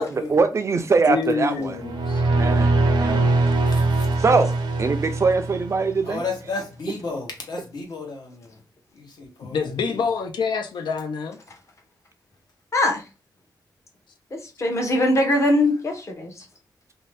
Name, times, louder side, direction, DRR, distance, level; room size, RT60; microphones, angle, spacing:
voice 1, 0.0-1.8 2.3-3.3 4.2-4.5 4.8-6.2, right 4 dB, 40° right, 0.4 m, -22 dB
voice 2, 1.1-2.2 9.4-11.4, left 5 dB, 85° left, 0.4 m, -26 dB
sound 1, 1.7-6.0, right 2 dB, 85° right, 0.6 m, -22 dB
voice 3, 3.7-4.1 6.1-8.5 8.9-9.7, left 3 dB, 65° left, 1.0 m, -33 dB
voice 4, 12.7-13.0 14.6-16.5, left 1 dB, 40° left, 0.8 m, -21 dB
2.7 x 2.2 x 3.2 m
wide cardioid pair, 125°, 8 cm